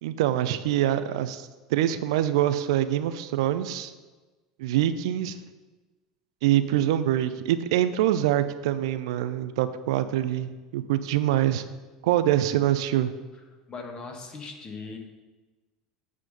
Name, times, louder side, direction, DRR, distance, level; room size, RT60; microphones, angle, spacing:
voice 1, 0.0-3.9 4.6-5.4 6.4-11.6 12.0-13.1, right 12 dB, 65° right, 12 dB, 0.4 m, -25 dB
voice 2, 13.7-15.0, left 4 dB, 30° left, 3 dB, 1.4 m, -39 dB
8.3 x 3.6 x 6.7 m, 1.2 s
figure-of-eight pair, 75°, 3 cm